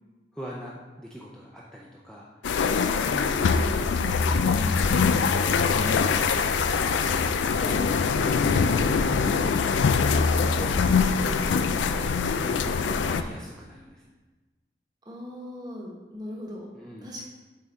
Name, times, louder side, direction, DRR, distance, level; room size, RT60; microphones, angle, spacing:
voice 1, 0.3-2.3 3.0-5.1 7.5-8.0 8.3-8.9 10.1-14.1 16.7-17.1, equal, 5° left, -4 dB, 0.5 m, -40 dB
sound 1, 2.4-13.2, left 5 dB, 85° left, 0.4 m, -23 dB
voice 2, 5.7-6.1 15.0-16.7 17.0-17.3, left 1 dB, 20° right, -2 dB, 1.0 m, -38 dB
7.7 x 3.7 x 4.1 m, 1.3 s
head